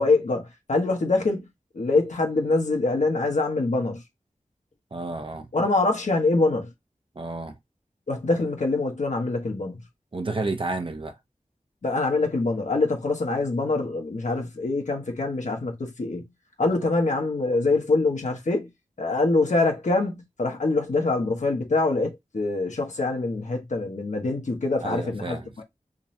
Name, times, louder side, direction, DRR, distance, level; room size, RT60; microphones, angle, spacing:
voice 1, 0.0-1.5 1.7-4.0 5.5-6.7 8.1-9.8 11.8-16.3 16.6-18.7 19.0-25.4, left 3 dB, 70° left, 1.2 m, -24 dB
voice 2, 4.9-5.5 7.2-7.6 10.1-11.2 24.8-25.6, right 3 dB, 45° right, 0.7 m, -31 dB
3.8 x 3.0 x 2.7 m
wide cardioid pair, 65°, 13 cm